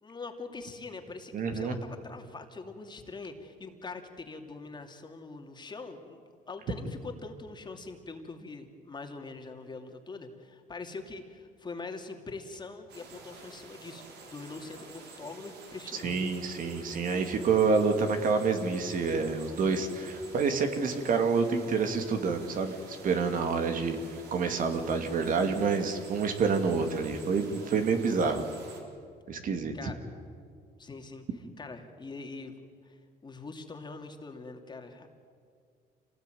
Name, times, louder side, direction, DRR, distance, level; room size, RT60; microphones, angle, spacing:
voice 1, 0.0-6.2 6.5-16.2 29.7-30.0 30.8-35.1, left 3 dB, 25° left, 4 dB, 2.7 m, -43 dB
voice 2, 1.3-1.8 16.0-28.5 29.3-29.7, right 5 dB, 55° right, 6 dB, 2.5 m, -28 dB
sound 1, 12.9-28.8, right 4 dB, 75° right, 4.4 m, -49 dB
27.0 x 18.5 x 9.4 m, 2.2 s
cardioid pair, 110°, 17 cm